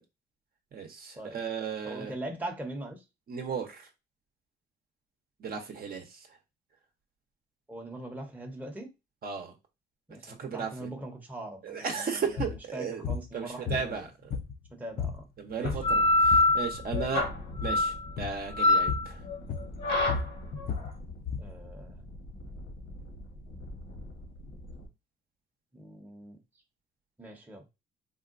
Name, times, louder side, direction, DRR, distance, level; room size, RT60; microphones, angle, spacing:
voice 1, 0.7-2.1 3.3-3.9 5.4-6.0 9.2-9.5 10.2-10.9 11.6-13.0 13.3-14.4 15.4-17.2 17.6-19.2, right 6 dB, 50° right, 0.7 m, -35 dB
voice 2, 1.8-3.0 7.7-8.9 10.1-14.0 14.7-15.3 15.6-15.8 21.4-22.1 25.7-26.4 27.2-27.7, right 1 dB, 10° right, 0.7 m, -41 dB
sound 1, 12.3-12.6 13.0-13.3 13.7-14.7 15.0-15.2 15.5-16.0 16.2-17.2 17.5-17.8 18.2-18.4 18.9-19.1 19.5-21.5, left 5 dB, 50° left, 0.5 m, -34 dB
sound 2, 15.7-24.8, left 2 dB, 70° left, 1.1 m, -27 dB
3.6 x 2.2 x 2.4 m
cardioid pair, 90°, 20 cm